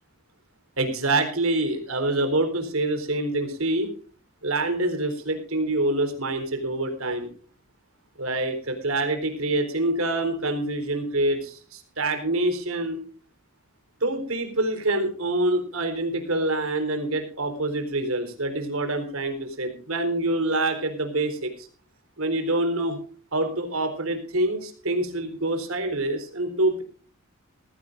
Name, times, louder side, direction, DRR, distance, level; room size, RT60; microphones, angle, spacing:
voice 1, 0.8-3.9 4.4-7.3 8.2-13.0 14.0-21.7 22.2-23.0 23.3-26.8, right 2 dB, 75° right, 6 dB, 4.2 m, -26 dB
18.5 x 16.0 x 2.6 m, 0.42 s
head